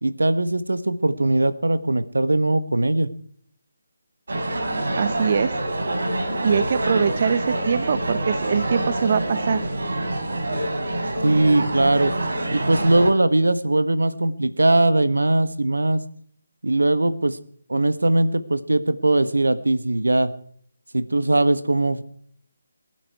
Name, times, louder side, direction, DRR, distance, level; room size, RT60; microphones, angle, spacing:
voice 1, 0.0-3.1 11.2-12.1 12.5-16.0 16.6-17.4 17.7-20.3 20.9-22.0, right 2 dB, 85° right, 12 dB, 1.4 m, -20 dB
sound 1, 4.3-13.1, right 1 dB, 70° right, 4.3 m, -26 dB
voice 2, 5.0-5.5 6.4-9.6, right 6 dB, 45° right, 13 dB, 0.9 m, -23 dB
27.5 x 11.0 x 4.8 m, 0.62 s
figure-of-eight pair, 155°, 0 cm